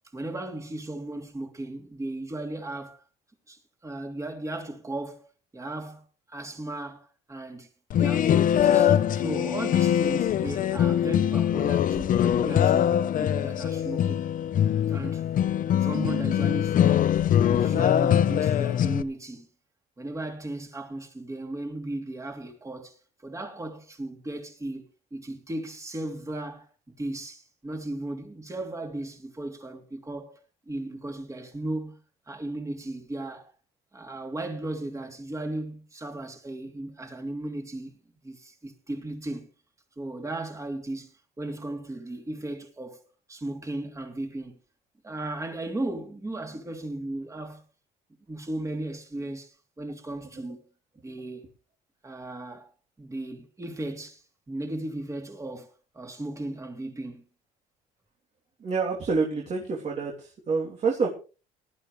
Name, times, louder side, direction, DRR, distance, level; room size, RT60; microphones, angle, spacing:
voice 1, 0.1-3.0 3.5-5.2 5.5-7.7 7.9-12.9 13.2-14.2 14.9-15.2 15.8-17.2 17.5-19.5 20.0-24.8 25.1-26.7 27.0-30.4 30.7-32.0 32.3-33.5 33.9-37.9 38.2-39.5 40.0-41.1 41.4-43.0 43.3-44.5 45.0-47.6 48.3-50.6 51.0-51.5 52.0-52.7 53.0-57.2, right 1 dB, 20° right, 3.2 m, -36 dB
sound 1, 7.9-19.0, left 10 dB, 55° left, 0.9 m, -23 dB
voice 2, 58.6-61.1, right 4 dB, 40° right, 3.2 m, -27 dB
19.0 x 11.5 x 3.3 m
cardioid pair, 110°, 17 cm